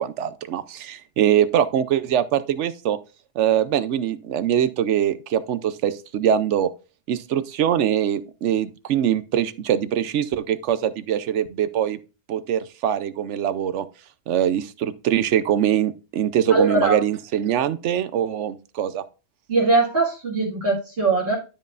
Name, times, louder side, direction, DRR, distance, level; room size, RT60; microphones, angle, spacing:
voice 1, 0.0-3.0 3.4-6.7 7.1-12.0 12.3-13.8 14.3-19.0, right 10 dB, 85° right, 1.0 m, -23 dB
voice 2, 16.5-17.0 19.5-21.4, right 3 dB, 55° right, 2.3 m, -21 dB
12.0 x 5.3 x 2.5 m
omnidirectional pair, 1.2 m